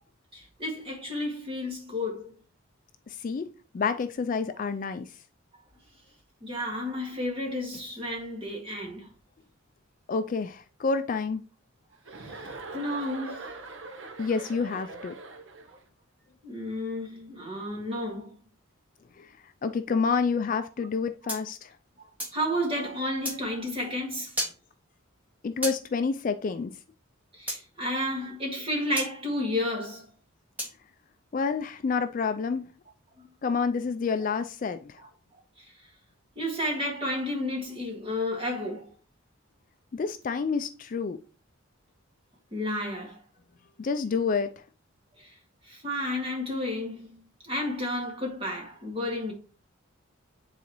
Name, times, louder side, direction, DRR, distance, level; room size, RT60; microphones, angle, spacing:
voice 1, 0.3-2.3 6.4-9.1 12.2-13.5 15.7-15.8 16.4-18.4 21.2-21.3 22.3-24.4 27.3-30.1 35.0-35.1 35.6-35.7 36.4-38.9 42.5-43.2 45.2-45.4 45.6-49.3, left 1 dB, 25° right, 2.0 m, -32 dB
voice 2, 3.1-3.5 3.7-5.1 10.1-11.4 14.2-15.1 19.2-19.3 19.6-21.7 25.4-26.8 31.3-32.7 33.4-35.0 39.9-41.2 43.8-44.6, left 5 dB, 40° left, 0.3 m, -28 dB
Chuckle chortle, 12.0-15.8, right 3 dB, 60° right, 0.8 m, -41 dB
sound 1, 21.3-22.4 23.2-23.4 24.4-24.6 25.6-25.8 27.5-27.6 29.0-29.1 30.6-30.8, equal, 10° right, 1.7 m, -32 dB
9.4 x 4.0 x 3.0 m
head